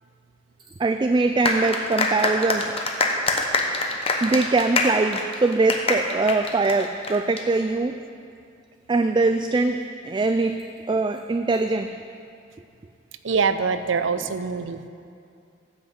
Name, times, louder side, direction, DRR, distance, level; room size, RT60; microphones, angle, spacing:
voice 1, 0.8-2.7 3.3-3.4 4.2-8.0 8.9-11.9 14.2-14.3, right 3 dB, 25° right, 7 dB, 0.3 m, -22 dB
sound 1, 1.4-7.4, left 3 dB, 30° left, 1.0 m, -25 dB
voice 2, 13.2-14.9, right 5 dB, 80° right, 11 dB, 0.6 m, -24 dB
14.5 x 6.1 x 7.9 m, 2.4 s
head